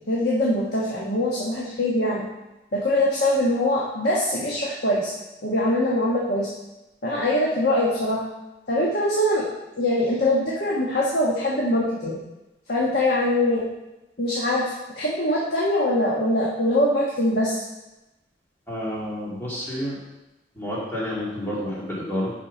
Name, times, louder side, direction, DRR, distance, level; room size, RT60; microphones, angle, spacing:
voice 1, 0.1-2.3 2.7-5.1 5.4-6.5 7.0-8.2 8.7-9.5 9.8-12.2 12.7-13.7 14.2-17.6, left 1 dB, 65° left, -5 dB, 1.3 m, -23 dB
voice 2, 18.7-20.0 20.5-22.3, equal, 10° left, -7 dB, 2.2 m, -29 dB
7.1 x 5.7 x 5.1 m, 1.0 s
head